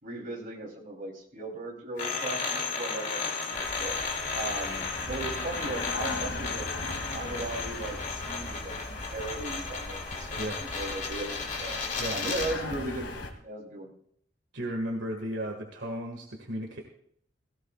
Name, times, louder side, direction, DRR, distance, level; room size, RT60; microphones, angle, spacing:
voice 1, 0.0-4.0 4.3-6.7 7.1-11.8 12.1-13.9, right 2 dB, 50° right, -1 dB, 3.3 m, -37 dB
sound 1, 2.0-12.6, left 4 dB, 45° left, 2.6 m, -34 dB
sound 2, 3.5-13.3, left 2 dB, 80° left, 2.2 m, -39 dB
voice 2, 14.5-16.8, equal, 75° right, 2 dB, 1.8 m, -34 dB
17.5 x 16.5 x 2.4 m, 0.68 s
head